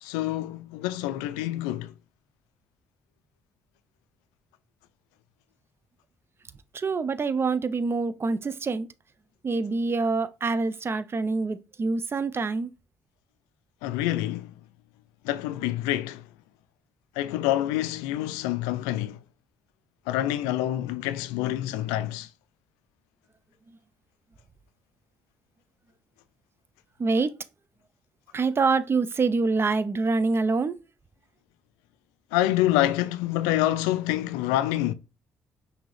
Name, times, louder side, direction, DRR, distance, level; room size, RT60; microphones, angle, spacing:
voice 1, 0.0-1.9 13.8-14.5 15.2-16.2 17.2-19.2 20.1-22.3 32.3-34.9, left 14 dB, 85° left, 0.3 m, -27 dB
voice 2, 6.7-8.9 9.4-12.7 27.0-27.3 28.3-30.8, right 4 dB, 40° right, 0.6 m, -25 dB
6.0 x 2.8 x 3.1 m
hypercardioid pair, 45°, 6 cm